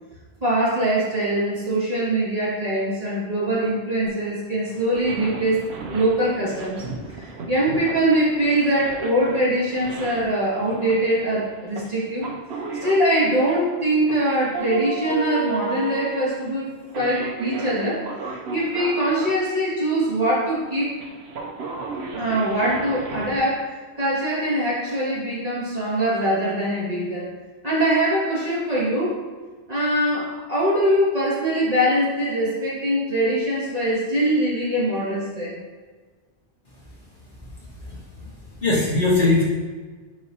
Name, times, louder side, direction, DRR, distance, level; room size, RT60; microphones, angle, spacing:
voice 1, 0.4-6.8 7.5-12.3 12.8-16.7 16.9-18.0 18.5-20.9 22.1-23.7 24.0-27.3 27.6-29.1 29.7-35.6, right 1 dB, 35° right, -9 dB, 2.2 m, -22 dB
sound 1, 4.1-4.2 4.7-19.4 19.8-23.4, right 4 dB, 75° right, 1.0 m, -34 dB
voice 2, 37.8-38.3 38.6-39.4, left 2 dB, 50° left, -7 dB, 1.8 m, -21 dB
9.3 x 4.2 x 2.9 m, 1.4 s
omnidirectional pair, 1.1 m